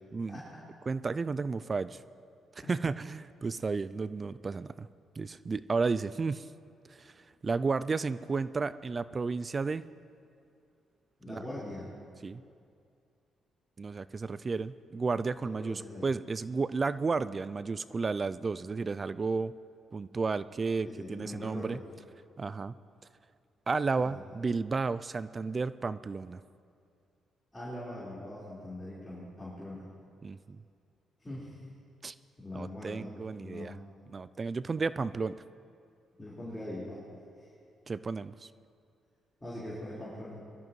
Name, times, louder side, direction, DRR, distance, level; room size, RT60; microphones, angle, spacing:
voice 1, 0.3-0.6 2.6-2.7 11.2-11.9 15.6-16.0 20.8-21.8 27.5-29.9 31.2-31.6 32.4-33.7 36.2-37.0 37.4-37.5 39.4-40.4, left 1 dB, 15° left, -8 dB, 4.4 m, -42 dB
voice 2, 0.9-2.0 2.7-4.9 5.2-6.5 6.9-7.1 7.4-9.8 11.3-11.4 12.2-12.4 13.8-19.5 19.9-21.8 22.4-22.7 23.7-26.4 30.2-30.6 32.0-32.1 32.5-33.7 34.1-35.3 37.9-38.5, right 4 dB, 30° right, 16 dB, 0.3 m, -32 dB
22.5 x 13.0 x 3.2 m, 2.4 s
cardioid pair, 90°, 0 cm